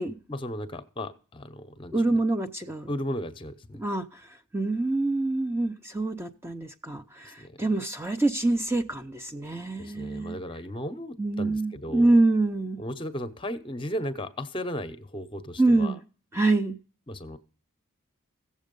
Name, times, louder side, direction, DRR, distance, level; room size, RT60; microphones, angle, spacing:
voice 1, 0.3-1.9 2.9-3.8 7.2-7.6 9.8-12.1 12.8-15.9 17.1-17.4, equal, 25° left, 11 dB, 0.8 m, -35 dB
voice 2, 1.9-2.9 3.8-10.4 11.2-12.8 15.6-16.0 16.3-16.8, right 2 dB, 10° right, 7 dB, 0.5 m, -26 dB
16.0 x 7.4 x 5.3 m, 0.40 s
head